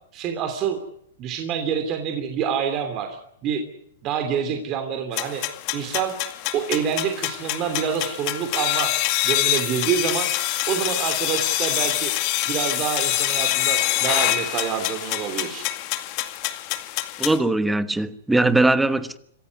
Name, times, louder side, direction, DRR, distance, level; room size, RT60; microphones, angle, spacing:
voice 1, 0.1-0.8 1.2-3.2 3.4-3.6 4.0-5.4 5.7-6.1 6.5-8.9 9.2-10.3 10.7-12.1 12.5-15.6, right 8 dB, 30° right, 3.0 m, -26 dB
sound 1, 5.1-17.4, left 16 dB, 40° left, 2.1 m, -25 dB
voice 2, 17.2-19.2, right 2 dB, 5° right, 1.2 m, -20 dB
26.5 x 15.0 x 9.7 m
hypercardioid pair, 140°, 0 cm